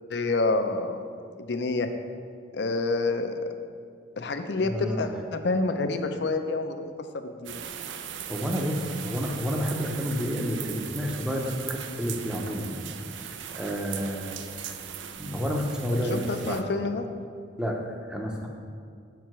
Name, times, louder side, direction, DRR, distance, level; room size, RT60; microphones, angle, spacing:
voice 1, 0.1-1.0 1.4-1.9 2.5-3.3 4.2-6.8 7.1-7.6 15.9-17.1, left 3 dB, 65° left, 7 dB, 0.5 m, -28 dB
voice 2, 4.6-5.1 8.3-12.8 13.2-14.4 15.2-16.6 17.6-18.5, equal, 5° right, 0 dB, 0.6 m, -30 dB
sound 1, 7.4-16.6, right 9 dB, 80° right, 0.4 m, -39 dB
5.6 x 4.6 x 6.0 m, 2.2 s
head